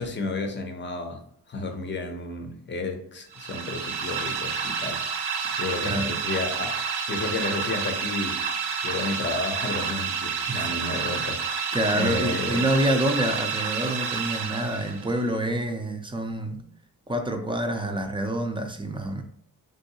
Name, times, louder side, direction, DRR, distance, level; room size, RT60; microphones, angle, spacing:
voice 1, 0.0-5.0 5.6-8.4 8.8-12.6, left 3 dB, 30° left, 0.6 m, -32 dB
sound 1, 3.3-15.2, right 6 dB, 80° right, 0.7 m, -29 dB
voice 2, 5.4-6.2 10.5-10.7 11.7-16.6 17.1-19.2, right 1 dB, 15° right, 0.5 m, -27 dB
3.5 x 2.7 x 2.7 m
cardioid pair, 75°, 40 cm